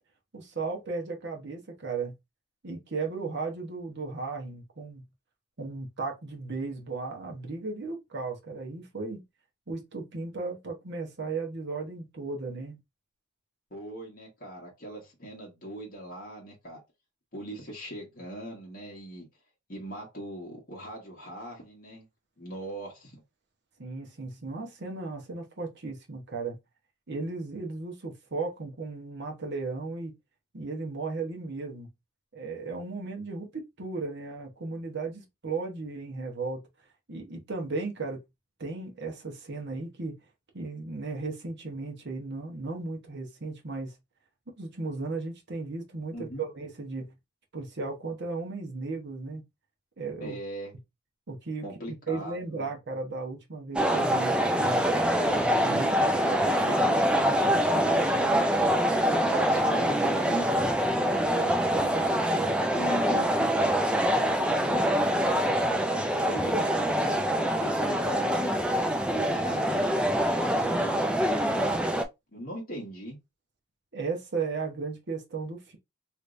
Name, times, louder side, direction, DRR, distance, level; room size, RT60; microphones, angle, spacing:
voice 1, 0.3-2.1 2.6-5.0 5.6-9.2 9.7-12.8 23.8-26.6 27.1-30.1 30.5-31.9 32.3-36.7 37.1-38.2 38.6-40.2 40.5-43.9 44.6-47.1 47.5-49.4 50.0-50.4 51.3-54.8 55.6-55.9 73.9-75.8, right 3 dB, 50° right, 0.9 m, -35 dB
voice 2, 13.7-16.8 17.3-19.3 19.7-22.1 22.4-23.2 46.1-46.4 50.2-50.7 51.6-52.7 56.0-58.5 59.1-60.5 62.7-63.8 64.5-68.7 69.1-71.8 72.3-73.2, right 1 dB, 40° left, 1.4 m, -40 dB
sound 1, 53.7-72.0, equal, 5° right, 0.3 m, -25 dB
3.2 x 3.1 x 2.5 m
head